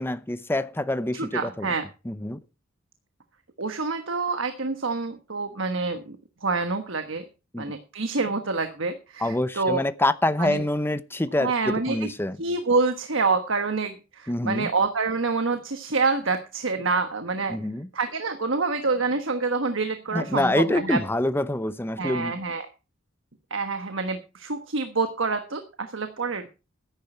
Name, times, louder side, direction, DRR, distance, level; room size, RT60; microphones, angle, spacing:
voice 1, 0.0-1.7 2.1-2.4 7.5-7.7 9.2-12.4 14.3-14.7 17.5-17.9 20.1-22.4, left 1 dB, 10° left, 0.8 m, -26 dB
voice 2, 1.1-1.9 3.6-6.2 6.4-7.2 7.6-9.8 10.4-10.6 11.4-12.1 12.4-17.6 17.9-21.0 22.0-22.7 23.5-26.5, right 4 dB, 65° right, 1.3 m, -27 dB
14.0 x 10.5 x 4.5 m
head